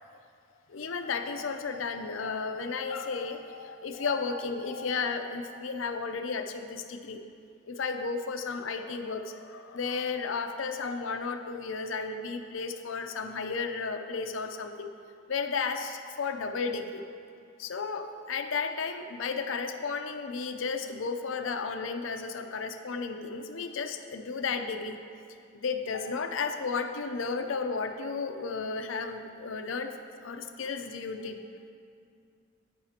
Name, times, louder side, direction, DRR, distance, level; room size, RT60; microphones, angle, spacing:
voice 1, 0.7-7.2 7.7-14.9 15.3-17.0 17.6-25.0 25.5-29.9 30.2-31.7, left 4 dB, 90° left, 7 dB, 0.6 m, -33 dB
11.0 x 9.4 x 2.9 m, 2.4 s
head